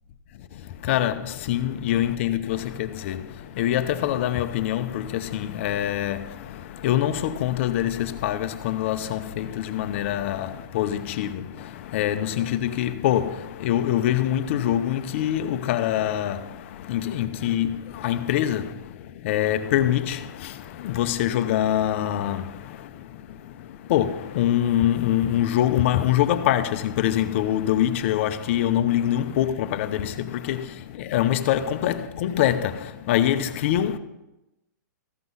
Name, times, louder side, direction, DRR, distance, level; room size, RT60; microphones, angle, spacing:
voice 1, 0.3-34.0, left 11 dB, 40° left, 0.7 m, -25 dB
14.5 x 6.1 x 5.5 m
hypercardioid pair, 155°, 10 cm